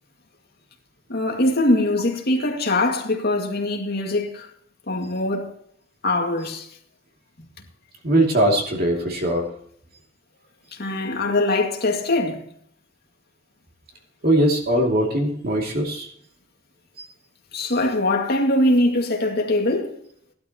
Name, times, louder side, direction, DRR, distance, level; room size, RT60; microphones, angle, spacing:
voice 1, 1.1-4.5 4.9-5.5 6.0-6.7 10.7-12.5 17.5-20.0, left 1 dB, 55° left, 2.2 m, -22 dB
voice 2, 8.0-9.5 14.2-16.1 17.0-17.1, right 1 dB, 55° right, 2.7 m, -20 dB
16.5 x 12.0 x 3.0 m
head